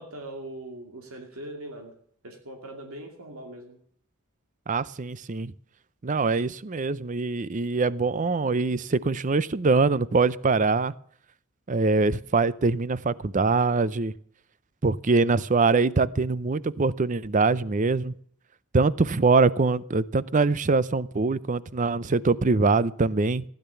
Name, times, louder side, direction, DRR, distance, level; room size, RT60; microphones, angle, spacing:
voice 1, 0.0-1.9 2.2-3.8, right 1 dB, 85° right, 2 dB, 2.4 m, -40 dB
voice 2, 4.7-5.5 6.0-10.9 11.7-14.1 14.8-18.1 18.7-23.4, right 3 dB, 35° right, 18 dB, 0.5 m, -23 dB
15.5 x 10.5 x 6.9 m, 0.63 s
head